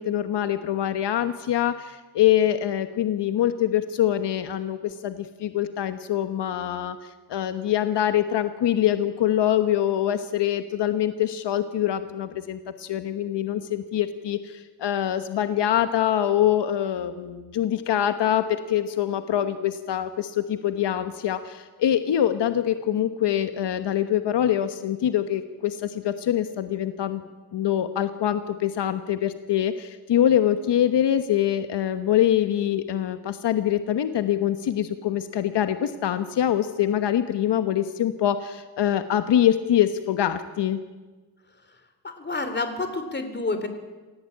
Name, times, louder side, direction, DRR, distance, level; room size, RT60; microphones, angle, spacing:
voice 1, 0.0-7.0 7.3-27.2 27.5-40.8, left 11 dB, 75° left, 9 dB, 1.3 m, -24 dB
voice 2, 42.0-43.7, left 3 dB, 25° left, 8 dB, 3.3 m, -29 dB
27.5 x 16.0 x 8.6 m, 1.3 s
cardioid pair, 110°, 42 cm